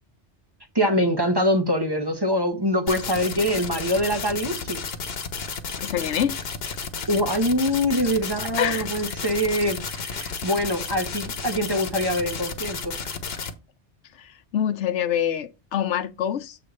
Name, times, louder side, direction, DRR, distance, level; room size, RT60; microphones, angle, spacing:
voice 1, 0.7-4.8 7.1-12.9, equal, 20° right, 1.2 m, -24 dB
sound 1, 2.9-13.5, left 5 dB, 60° left, 1.2 m, -32 dB
voice 2, 5.8-6.4 8.6-8.9 14.1-16.6, left 9 dB, 85° left, 1.0 m, -26 dB
7.8 x 3.3 x 6.4 m
omnidirectional pair, 1.2 m